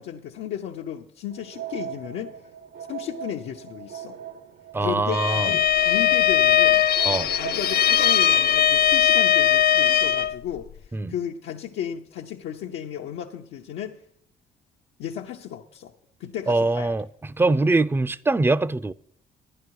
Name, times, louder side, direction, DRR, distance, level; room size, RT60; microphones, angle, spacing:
voice 1, 0.0-2.3 2.9-4.2 4.8-6.9 7.3-14.0 15.0-15.9 16.2-17.0, left 10 dB, 90° left, 0.8 m, -34 dB
sound 1, 1.3-8.4, right 8 dB, 65° right, 0.8 m, -39 dB
voice 2, 4.7-5.5 7.1-7.3 10.9-11.1 16.5-18.9, right 2 dB, 10° right, 0.4 m, -23 dB
Bowed string instrument, 5.1-10.4, left 10 dB, 50° left, 0.4 m, -19 dB
11.0 x 10.5 x 4.7 m
cardioid pair, 90°, 20 cm